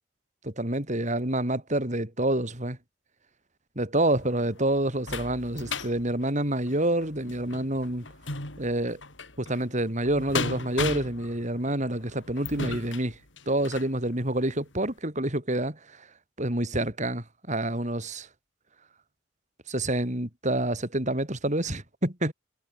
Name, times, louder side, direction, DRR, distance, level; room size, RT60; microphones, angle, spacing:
voice 1, 0.4-2.8 3.8-8.0 8.6-9.0 9.4-13.2 13.5-16.1 16.4-18.3 19.7-22.3, right 1 dB, 40° right, 5.6 m, -28 dB
sound 1, 4.1-14.0 14.5-14.6 15.0-15.1, left 3 dB, 75° left, 6.7 m, -37 dB
head